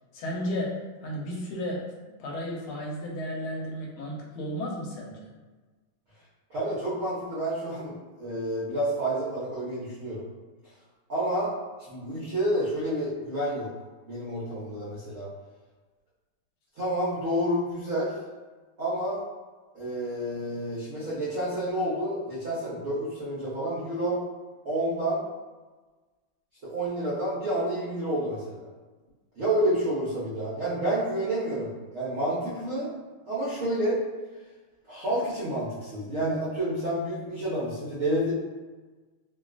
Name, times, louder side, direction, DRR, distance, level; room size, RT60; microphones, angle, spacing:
voice 1, 0.1-1.9 2.2-5.3, equal, 75° left, -2 dB, 1.5 m, -33 dB
voice 2, 6.5-7.9 8.2-10.2 11.1-11.5 11.9-13.7 14.1-15.3 16.8-18.1 18.8-19.2 19.7-24.2 24.6-25.2 26.6-28.6 29.4-32.9 33.3-34.0 34.9-38.3, right 1 dB, 75° right, -8 dB, 0.7 m, -29 dB
3.4 x 2.3 x 2.4 m, 1.3 s
omnidirectional pair, 2.4 m